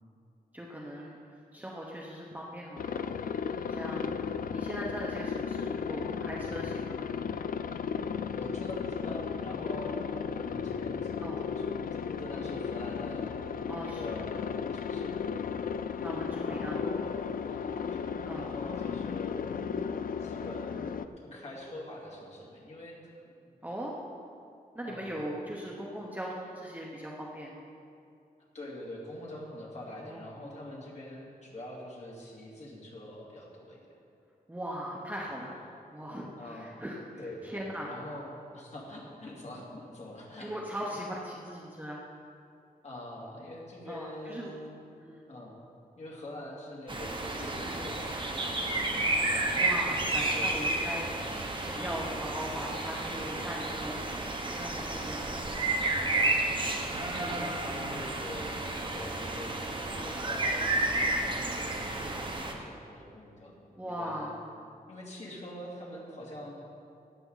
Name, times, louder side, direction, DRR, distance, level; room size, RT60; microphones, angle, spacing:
voice 1, 0.5-1.2 1.5-4.1 4.5-7.0 11.2-11.4 13.7-14.0 16.0-16.8 18.2-18.5 23.6-24.0 24.7-27.5 30.1-30.5 34.5-35.6 35.9-37.9 40.4-42.0 43.9-44.5 45.0-45.2 47.6-47.8 49.6-54.0 54.5-55.3 57.2-57.5 59.9-60.1 63.7-64.4, equal, 10° right, -3 dB, 1.0 m, -39 dB
Aircraft, 2.8-21.1, left 6 dB, 60° left, 0.4 m, -35 dB
voice 2, 8.3-13.4 13.8-15.2 16.0-16.2 16.4-17.1 17.5-18.0 18.3-19.5 20.2-23.0 24.8-25.2 28.5-34.0 35.2-35.3 36.4-36.8 37.2-40.5 42.8-45.0 45.3-45.6 46.0-49.7 50.1-50.7 56.2-63.5 64.0-64.3 64.9-66.6, left 1 dB, 45° left, -4 dB, 2.6 m, -44 dB
sound 1, 46.9-62.5, right 2 dB, 30° right, 1.2 m, -31 dB
15.5 x 9.8 x 4.0 m, 2.6 s
wide cardioid pair, 140°, 16 cm